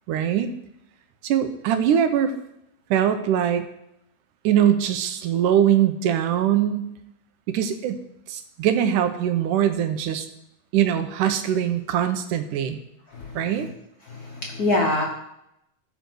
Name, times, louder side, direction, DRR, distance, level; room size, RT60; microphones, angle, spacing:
voice 1, 0.1-0.5 1.2-2.3 2.9-3.7 4.4-6.9 7.5-8.0 8.3-10.3 10.7-12.8 13.4-13.7, right 10 dB, 90° right, 9 dB, 2.5 m, -22 dB
voice 2, 13.1-13.7 14.0-15.0, left 2 dB, 70° left, -1 dB, 0.8 m, -25 dB
14.0 x 5.3 x 6.3 m, 0.81 s
omnidirectional pair, 3.5 m